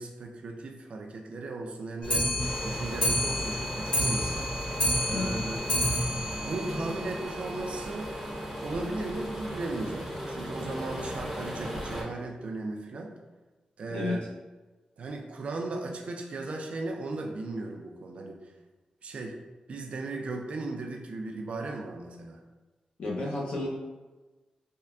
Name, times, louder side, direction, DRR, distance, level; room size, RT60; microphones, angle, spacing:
voice 1, 0.0-2.3 2.6-4.5 5.1-5.6 6.4-8.2 8.6-13.1 13.8-14.2 15.0-18.5 19.0-19.4 19.7-22.4, right 2 dB, 55° right, 3 dB, 0.4 m, -36 dB
Clock, 2.0-7.5 7.9-8.0 8.2-8.3 8.6-8.7 9.0-9.1 9.8-9.9 10.6-10.7 11.4-11.5, equal, 45° left, 1.1 m, -29 dB
sound 1, 2.4-12.0, equal, 5° right, 0.7 m, -37 dB
voice 2, 5.1-5.5 6.7-6.8 13.9-14.2 23.0-23.7, left 2 dB, 60° left, -4 dB, 0.6 m, -32 dB
3.5 x 2.2 x 2.3 m, 1.2 s
wide cardioid pair, 130°, 2 cm